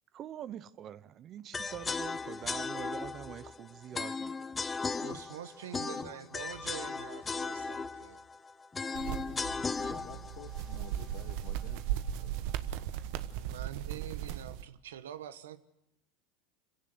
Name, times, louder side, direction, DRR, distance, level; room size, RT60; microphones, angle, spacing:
voice 1, 0.1-4.5 4.8-5.4, right 10 dB, 40° right, 0.9 m, -45 dB
sound 1, 1.5-11.6, left 4 dB, 20° left, 0.8 m, -37 dB
voice 2, 5.0-8.2 13.3-15.6, right 10 dB, 85° right, 1.2 m, -45 dB
sound 2, 8.9-14.6, right 11 dB, 65° right, 1.2 m, -37 dB
voice 3, 9.9-12.5, left 13 dB, 60° left, 2.1 m, -52 dB
26.0 x 16.5 x 7.9 m
hypercardioid pair, 100°, 0 cm